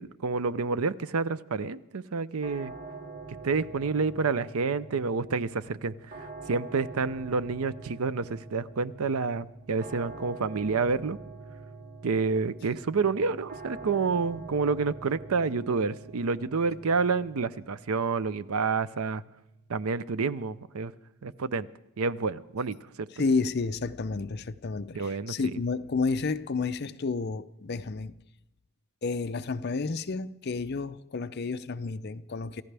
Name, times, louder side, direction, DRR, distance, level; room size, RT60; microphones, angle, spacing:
voice 1, 0.0-2.7 3.4-11.2 12.0-19.2 19.7-20.9 21.2-21.7 22.0-23.2 24.9-25.3, right 4 dB, 85° right, 0.6 m, -29 dB
sound 1, 2.4-21.3, right 3 dB, 45° right, 2.0 m, -46 dB
voice 2, 23.2-28.2 29.0-32.6, left 4 dB, 50° left, 0.5 m, -31 dB
28.5 x 15.0 x 3.4 m
head